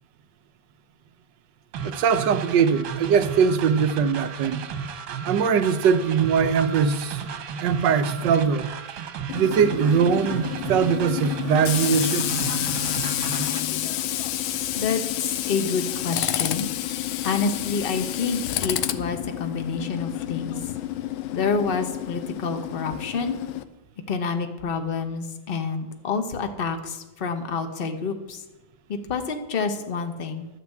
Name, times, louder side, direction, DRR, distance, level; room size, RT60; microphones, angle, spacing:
sound 1, 1.7-13.6, right 6 dB, 90° right, 1.7 m, -34 dB
voice 1, 1.8-4.6 5.2-7.2 7.6-8.7 9.3-12.3, right 6 dB, 70° right, 1.3 m, -21 dB
Tools, 9.3-23.6, left 12 dB, 90° left, 1.5 m, -29 dB
voice 2, 14.7-16.7 17.2-20.6 21.3-23.4 24.1-28.4 28.9-30.5, left 5 dB, 40° left, 0.9 m, -28 dB
12.0 x 5.9 x 8.3 m
omnidirectional pair, 2.2 m